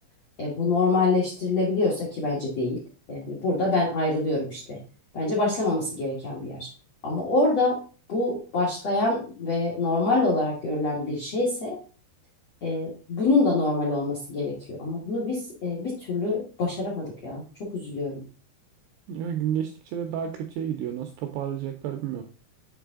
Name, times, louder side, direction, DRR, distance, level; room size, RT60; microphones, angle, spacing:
voice 1, 0.4-2.8 3.1-4.8 5.1-6.7 7.0-7.8 8.1-11.8 12.6-17.4 17.7-18.2, left 3 dB, 65° left, -4 dB, 1.5 m, -26 dB
voice 2, 19.1-22.2, right 9 dB, 90° right, 4 dB, 2.4 m, -31 dB
8.0 x 3.4 x 3.6 m, 0.37 s
omnidirectional pair, 5.5 m